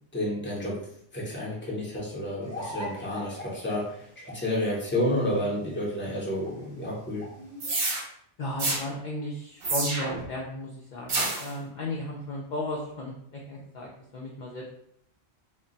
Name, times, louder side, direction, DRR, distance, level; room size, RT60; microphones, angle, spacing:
voice 1, 0.1-0.7 1.1-3.8 4.3-7.2, left 1 dB, 10° left, -5 dB, 0.7 m, -30 dB
sound 1, 2.4-7.8, equal, 25° right, 0.8 m, -43 dB
sound 2, 7.6-8.0 8.6-8.8 9.6-10.3 11.1-11.5, right 2 dB, 60° right, 0.8 m, -28 dB
voice 2, 8.4-14.7, left 1 dB, 60° left, -2 dB, 0.5 m, -35 dB
2.2 x 2.2 x 3.8 m, 0.69 s
omnidirectional pair, 1.2 m